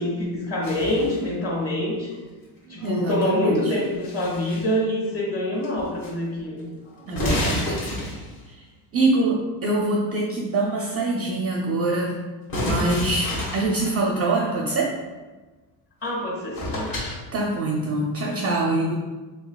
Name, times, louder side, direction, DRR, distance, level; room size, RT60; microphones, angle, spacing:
voice 1, 0.0-2.1 2.6-6.7 7.0-7.3 16.0-16.9, left 1 dB, 30° left, -2 dB, 1.4 m, -26 dB
sound 1, 0.6-1.3 3.7-4.7 5.6-6.1 6.4-6.5 7.1-8.5 12.5-14.0 16.1-16.2 16.5-17.2, left 1 dB, 45° left, 1.4 m, -29 dB
voice 2, 2.8-3.7 7.1-7.8 8.5-8.6 8.9-12.2 12.6-14.9 17.3-18.9, right 2 dB, 30° right, -1 dB, 0.4 m, -24 dB
3.9 x 3.7 x 2.3 m, 1.3 s
cardioid pair, 105°, 49 cm